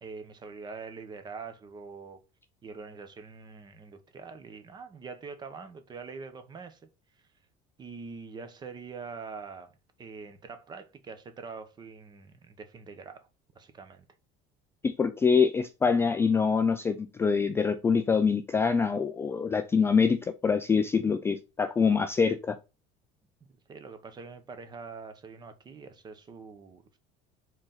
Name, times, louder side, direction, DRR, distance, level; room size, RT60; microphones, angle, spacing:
voice 1, 0.0-2.2 2.6-6.8 7.8-9.7 10.0-13.3 13.5-14.1 23.7-27.0, right 5 dB, 25° right, 0.9 m, -44 dB
voice 2, 14.8-22.6, left 5 dB, 15° left, 0.3 m, -25 dB
4.8 x 3.9 x 5.7 m
cardioid pair, 165°, 18 cm